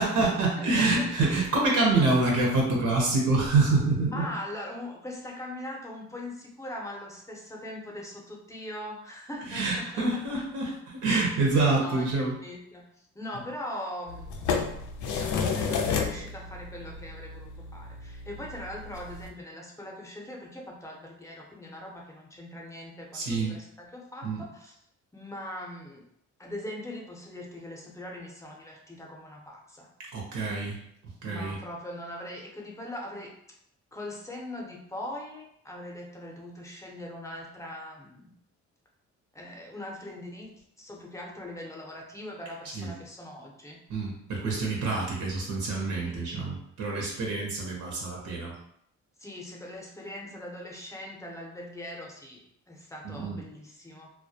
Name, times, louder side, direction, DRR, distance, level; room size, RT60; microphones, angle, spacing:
voice 1, 0.0-4.3 9.5-12.3 23.1-23.6 24.2-24.4 30.0-30.8 31.2-31.6 42.7-42.9 43.9-48.5 53.0-53.4, right 3 dB, 75° right, -1 dB, 0.8 m, -26 dB
voice 2, 4.0-9.9 11.8-12.1 12.4-14.5 15.1-24.8 25.1-26.1 26.4-29.9 31.3-33.4 33.9-38.4 39.3-43.8 46.1-46.2 47.5-47.6 49.2-54.1, left 1 dB, 10° left, -1 dB, 0.6 m, -41 dB
sound 1, 14.1-19.3, left 5 dB, 75° left, 0.4 m, -32 dB
2.2 x 2.1 x 2.7 m, 0.72 s
cardioid pair, 90°, 30 cm